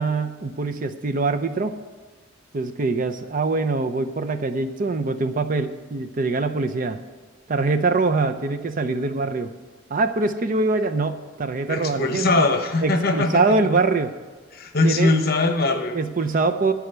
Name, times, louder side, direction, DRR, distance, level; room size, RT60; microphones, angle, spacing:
voice 1, 0.0-1.8 2.5-7.0 7.5-9.5 9.9-12.5 12.8-14.1 14.8-15.1 15.9-16.7, right 3 dB, 45° right, 10 dB, 0.6 m, -23 dB
voice 2, 11.7-13.7 14.5-16.0, left 2 dB, 50° left, 6 dB, 1.0 m, -21 dB
11.5 x 4.9 x 7.9 m, 1.4 s
head